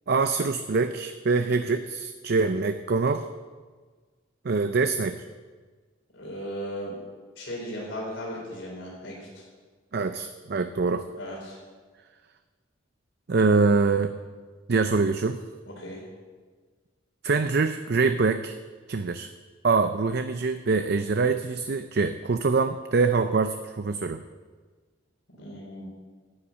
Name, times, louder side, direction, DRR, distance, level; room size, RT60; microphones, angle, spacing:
voice 1, 0.1-3.3 4.4-5.2 9.9-11.1 13.3-14.1 14.7-15.4 17.2-18.6 18.9-19.3 19.6-24.2, right 4 dB, 55° right, 9 dB, 0.5 m, -24 dB
voice 2, 6.1-7.0 7.4-9.4 11.2-11.5 15.8-16.0 25.4-25.9, equal, 75° left, -3 dB, 4.0 m, -36 dB
11.5 x 8.6 x 8.4 m, 1.5 s
head